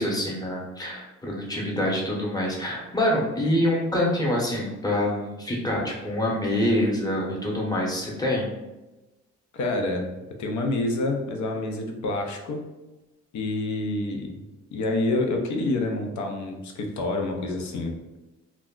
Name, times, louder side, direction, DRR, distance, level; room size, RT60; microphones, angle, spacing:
voice 1, 0.0-8.5, left 1 dB, 15° left, -3 dB, 0.8 m, -26 dB
voice 2, 9.5-10.1 10.4-12.6 13.3-14.4 14.7-17.9, left 2 dB, 70° left, 3 dB, 0.6 m, -27 dB
2.3 x 2.0 x 3.7 m, 1.0 s
cardioid pair, 90°, 30 cm